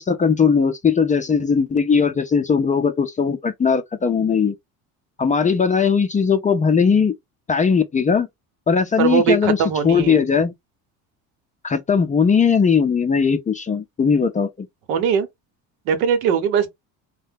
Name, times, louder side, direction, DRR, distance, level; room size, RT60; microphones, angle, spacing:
voice 1, 0.0-4.5 5.2-7.1 7.5-8.3 8.7-9.6 9.8-10.5 11.6-14.7, left 6 dB, 20° left, 0.4 m, -19 dB
voice 2, 9.0-10.2 14.9-15.3 15.9-16.7, right 7 dB, 85° right, 1.0 m, -20 dB
2.7 x 2.2 x 3.4 m
supercardioid pair, 90°, 42 cm